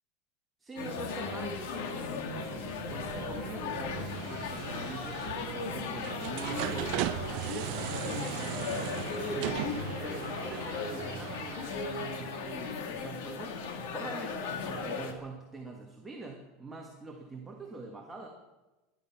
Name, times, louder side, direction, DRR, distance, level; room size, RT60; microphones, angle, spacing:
voice 1, 0.6-9.6 10.0-18.3, right 3 dB, 10° right, 0 dB, 1.5 m, -44 dB
sound 1, 0.8-15.1, left 4 dB, 75° left, 2.2 m, -37 dB
sound 2, 2.0-12.7, right 17 dB, 50° right, 0.4 m, -39 dB
21.5 x 11.0 x 5.9 m, 1.1 s
supercardioid pair, 170°, 0 cm